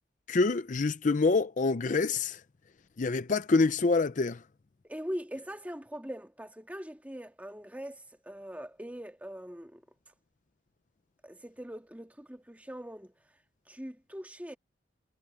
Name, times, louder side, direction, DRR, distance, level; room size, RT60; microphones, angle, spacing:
voice 1, 0.3-2.4 3.0-4.4, left 3 dB, 45° left, 0.5 m, -26 dB
voice 2, 4.8-9.8 11.2-13.1 13.7-14.6, equal, 10° right, 1.9 m, -42 dB
head